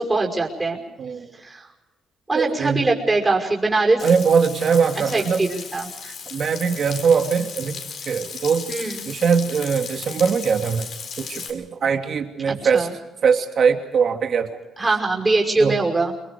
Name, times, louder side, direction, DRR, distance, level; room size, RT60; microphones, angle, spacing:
voice 1, 0.0-0.8 1.4-1.7 2.3-4.0 5.1-5.9 8.7-9.0 12.5-12.9 14.8-16.1, right 3 dB, 20° right, 0 dB, 5.6 m, -22 dB
voice 2, 1.0-1.3 2.3-2.9 4.0-5.5 6.0-8.7 9.1-10.9 11.2-12.9 13.2-14.6 15.6-15.8, right 6 dB, 55° right, 5 dB, 2.8 m, -21 dB
Frying (food), 4.0-11.5, left 6 dB, 65° left, 4.1 m, -35 dB
27.0 x 22.5 x 5.2 m, 1.1 s
cardioid pair, 90°, 0 cm